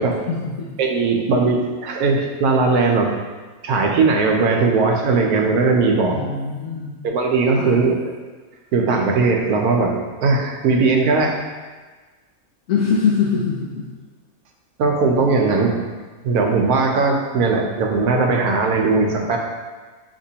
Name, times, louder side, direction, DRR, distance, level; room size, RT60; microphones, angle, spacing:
voice 1, 0.3-0.7 6.1-7.0 7.6-7.8 12.7-13.9, left 5 dB, 70° left, -3 dB, 0.9 m, -23 dB
voice 2, 0.8-3.1 3.6-6.2 7.0-8.1 8.7-11.3 14.8-15.8 16.2-19.4, right 4 dB, 80° right, 2 dB, 1.1 m, -18 dB
5.9 x 2.9 x 2.8 m, 1.3 s
omnidirectional pair, 1.6 m